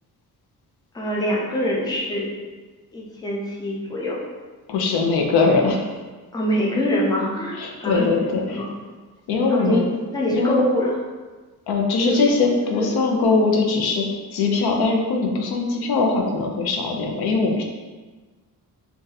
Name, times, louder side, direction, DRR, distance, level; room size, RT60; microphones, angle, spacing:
voice 1, 0.9-2.3 2.9-4.2 6.3-8.1 8.5-8.7 9.5-9.8 10.1-10.9 11.9-12.2 12.6-12.9, equal, 10° left, -3 dB, 0.4 m, -24 dB
voice 2, 4.7-6.0 7.5-8.6 9.3-9.8 10.3-10.6 11.7-14.1 14.3-17.6, left 3 dB, 80° left, 1 dB, 0.6 m, -21 dB
2.6 x 2.3 x 3.9 m, 1.3 s
wide cardioid pair, 150°, 37 cm